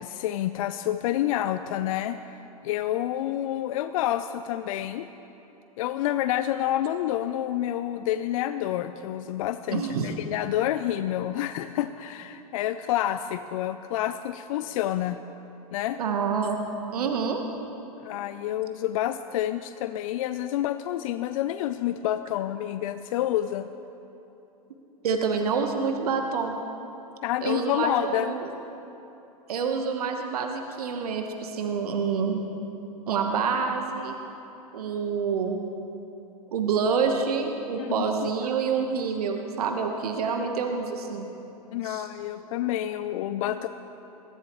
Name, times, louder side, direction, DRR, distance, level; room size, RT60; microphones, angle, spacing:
voice 1, 0.0-2.2 2.6-5.1 5.8-15.2 15.7-16.0 18.0-23.7 27.2-28.3 37.8-38.1 41.7-43.7, left 12 dB, 60° left, 11 dB, 0.5 m, -28 dB
voice 2, 9.7-10.1 16.0-16.6 16.9-17.4 25.0-26.6 27.4-28.5 29.5-32.4 33.1-34.1 34.7-35.6 36.5-41.3 41.8-42.1, right 5 dB, 75° right, 4 dB, 1.2 m, -27 dB
21.5 x 15.0 x 3.1 m, 3.0 s
hypercardioid pair, 100°, 19 cm